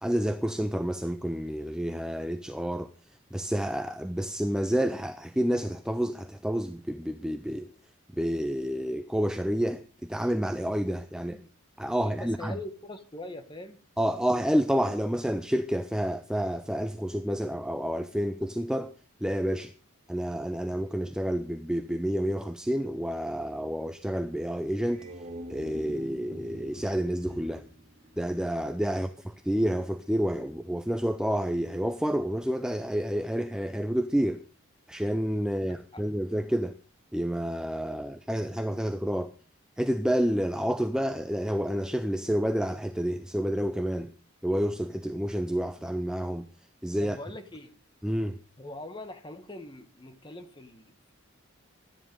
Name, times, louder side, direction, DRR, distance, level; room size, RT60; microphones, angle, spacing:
voice 1, 0.0-2.9 3.3-7.7 8.1-11.4 11.8-12.6 14.0-18.9 19.2-19.7 20.1-25.1 25.5-27.6 28.2-34.4 34.9-36.7 37.1-39.3 39.8-44.1 44.4-46.5 46.8-47.2 48.0-48.4, equal, 5° right, 0.5 m, -29 dB
voice 2, 11.2-11.5 12.0-13.8 35.6-36.0 47.0-47.7 48.6-51.1, left 2 dB, 20° left, 1.5 m, -43 dB
sound 1, 24.8-28.8, right 1 dB, 30° right, 2.7 m, -45 dB
13.0 x 10.0 x 5.3 m
head